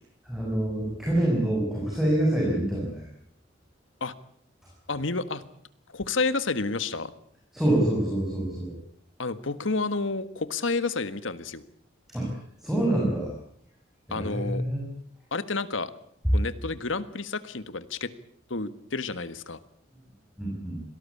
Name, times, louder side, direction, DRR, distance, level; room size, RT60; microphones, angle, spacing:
voice 1, 0.3-3.1 7.5-8.7 12.1-13.3 14.1-14.9 20.4-20.8, right 1 dB, ahead, -3 dB, 7.1 m, -26 dB
voice 2, 4.9-5.4 5.9-7.1 9.2-11.6 14.1-14.6 15.3-15.9 16.3-18.1 18.5-19.6, left 3 dB, 80° left, 13 dB, 1.6 m, -30 dB
25.5 x 18.0 x 8.6 m, 0.68 s
head